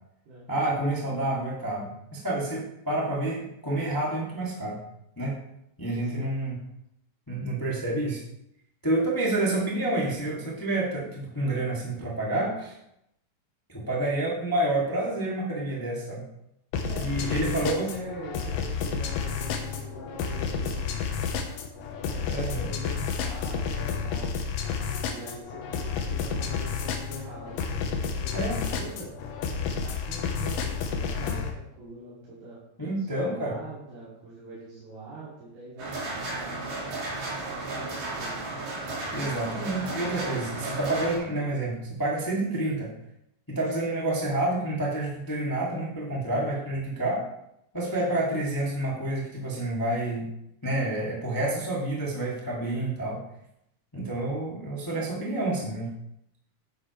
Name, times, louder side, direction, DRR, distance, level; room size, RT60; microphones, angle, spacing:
voice 1, 0.5-4.8 5.1-5.4 5.8-6.6 7.3-8.2 8.8-12.7 13.7-16.2 17.0-17.9 22.3-22.7 28.3-28.6 32.8-33.6 39.1-42.9 43.5-47.2 47.7-50.3 50.6-53.2 53.9-55.9, right 1 dB, 10° left, -4 dB, 1.2 m, -29 dB
voice 2, 6.0-6.4 16.8-21.2 21.9-24.3 25.1-29.1 29.7-32.6 33.0-36.6 37.3-38.5 48.1-48.2, right 2 dB, 80° right, -9 dB, 4.5 m, -43 dB
sound 1, 16.7-31.5, left 6 dB, 80° left, 2.9 m, -31 dB
sound 2, 35.8-41.2, right 2 dB, 65° right, 4.2 m, -34 dB
10.5 x 9.8 x 3.2 m, 0.80 s
omnidirectional pair, 4.3 m